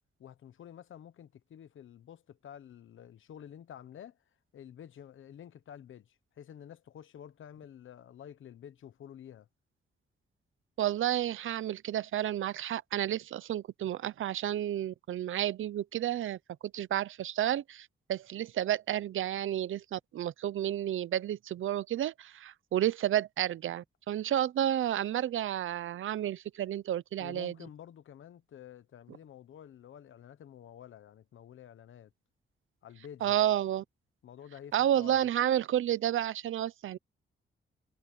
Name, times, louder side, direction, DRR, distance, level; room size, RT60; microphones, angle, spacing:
voice 1, 0.2-4.2 4.5-9.5 27.2-32.1 32.8-33.5 34.2-35.2, left 9 dB, 70° left, 1.0 m, -50 dB
voice 2, 10.8-27.5 33.2-33.8 34.7-37.0, right 11 dB, 70° right, 0.6 m, -31 dB
wide cardioid pair, 175°, 21 cm